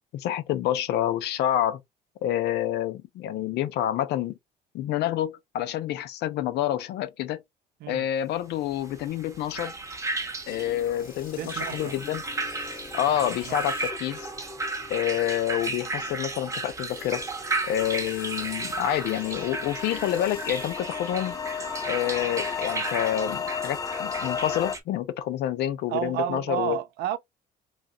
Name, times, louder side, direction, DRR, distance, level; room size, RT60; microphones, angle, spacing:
voice 1, 0.1-1.8 2.2-4.3 4.7-7.4 7.9-9.8 10.5-12.2 12.9-14.3 14.9-17.2 17.7-21.4 21.9-26.8, left 12 dB, 80° left, 0.6 m, -28 dB
sound 1, 8.9-24.8, right 3 dB, 15° right, 0.9 m, -34 dB
sound 2, 10.5-24.2, left 5 dB, 55° left, 2.1 m, -46 dB
voice 2, 11.4-12.0 13.1-13.2 13.4-13.6 25.9-27.2, right 11 dB, 75° right, 0.5 m, -31 dB
sound 3, 17.5-24.8, left 6 dB, 20° left, 0.4 m, -34 dB
3.7 x 2.4 x 2.6 m
cardioid pair, 110°, 17 cm